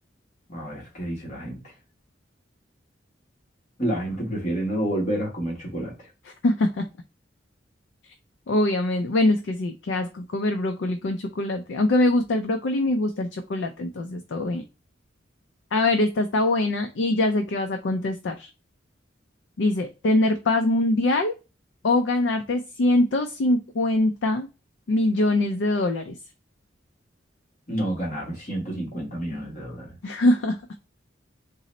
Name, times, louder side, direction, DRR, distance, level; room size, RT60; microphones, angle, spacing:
voice 1, 0.5-1.7 3.8-6.1 27.7-29.9, right 1 dB, 40° left, 1.2 m, -29 dB
voice 2, 6.4-6.9 8.5-14.7 15.7-18.5 19.6-21.3 21.8-24.5 24.9-26.2 30.0-30.6, left 2 dB, 70° left, 0.4 m, -23 dB
3.8 x 2.0 x 4.0 m
head